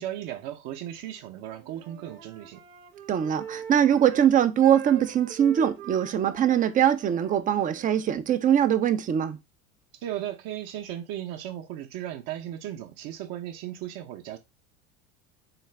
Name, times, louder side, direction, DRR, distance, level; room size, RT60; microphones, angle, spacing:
voice 1, 0.0-2.6 9.9-14.4, right 12 dB, 55° right, 0.7 m, -36 dB
Wind instrument woodwind instrument, 1.5-4.3 4.6-7.9, right 9 dB, 90° right, 0.9 m, -43 dB
voice 2, 3.1-9.4, right 9 dB, 20° right, 0.3 m, -22 dB
3.8 x 2.4 x 3.2 m
supercardioid pair, 100°, 41 cm